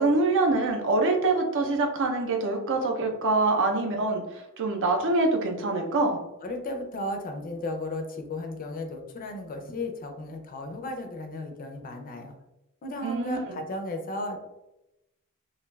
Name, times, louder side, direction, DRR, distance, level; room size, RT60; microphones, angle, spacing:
voice 1, 0.0-6.2 13.0-13.6, right 3 dB, 60° right, 2 dB, 0.5 m, -25 dB
voice 2, 6.4-12.3 12.8-14.4, left 2 dB, 40° left, 4 dB, 0.4 m, -35 dB
2.5 x 2.3 x 3.1 m, 0.91 s
head